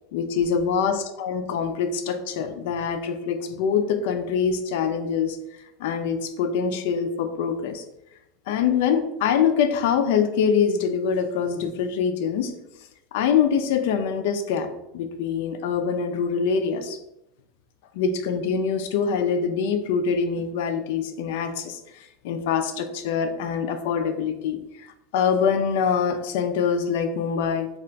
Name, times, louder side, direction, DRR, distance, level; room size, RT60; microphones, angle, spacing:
voice 1, 0.1-5.4 5.8-7.8 8.5-12.5 13.1-14.7 14.9-17.0 17.9-24.9 25.1-27.7, left 6 dB, 70° left, 8 dB, 0.3 m, -24 dB
2.4 x 2.2 x 3.8 m, 0.88 s
supercardioid pair, 160°, 0 cm